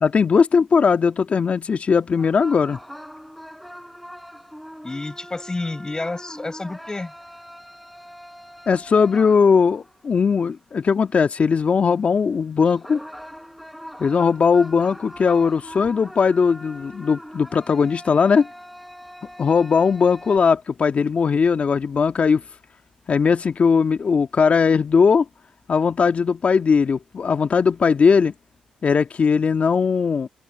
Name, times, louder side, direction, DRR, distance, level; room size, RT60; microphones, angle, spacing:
voice 1, 0.0-2.8 8.7-13.0 14.0-18.5 19.4-22.4 23.1-25.2 25.7-28.3 28.8-30.3, left 5 dB, 50° left, 1.6 m, -19 dB
sound 1, 2.2-10.0 12.6-20.4, equal, ahead, 4.6 m, -41 dB
voice 2, 4.8-7.1, left 2 dB, 25° left, 4.7 m, -30 dB
open air
supercardioid pair, 50°, 3 cm